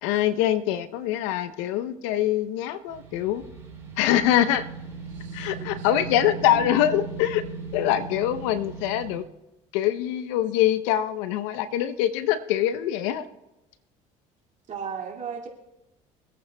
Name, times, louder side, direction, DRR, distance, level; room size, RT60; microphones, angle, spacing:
voice 1, 0.0-3.4 4.0-4.6 5.3-7.4 7.7-9.2 9.7-13.3, left 12 dB, 80° left, 13 dB, 0.7 m, -24 dB
sound 1, 2.9-9.2, right 4 dB, 15° right, 4.3 m, -38 dB
voice 2, 5.1-5.9 6.4-6.7 14.7-15.5, right 7 dB, 50° right, 0 dB, 2.2 m, -37 dB
24.0 x 8.7 x 2.2 m, 0.95 s
supercardioid pair, 75°, 16 cm